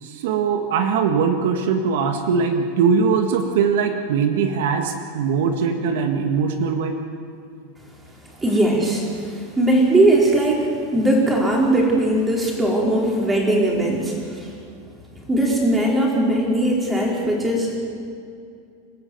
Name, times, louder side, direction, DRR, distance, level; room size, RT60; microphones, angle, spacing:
voice 1, 0.0-7.0, right 6 dB, 70° right, 5 dB, 1.8 m, -21 dB
voice 2, 8.4-14.5 15.3-17.8, right 1 dB, 10° right, -2 dB, 4.6 m, -19 dB
28.0 x 13.5 x 8.0 m, 2.4 s
supercardioid pair, 150°, 0 cm